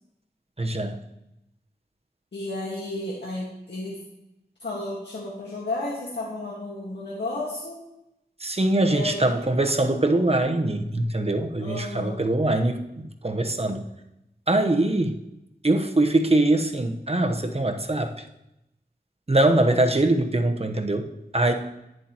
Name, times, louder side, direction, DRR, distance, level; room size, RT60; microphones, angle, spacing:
voice 1, 0.6-1.0 8.4-13.8 14.5-15.1 15.6-18.2 19.3-21.1 21.3-21.5, right 2 dB, 35° right, 5 dB, 1.0 m, -23 dB
voice 2, 2.3-4.0 4.6-7.8 8.7-9.4 11.6-12.2 21.5-21.6, left 2 dB, 80° left, -4 dB, 1.7 m, -33 dB
11.0 x 9.2 x 3.0 m, 0.88 s
wide cardioid pair, 45°, 17 cm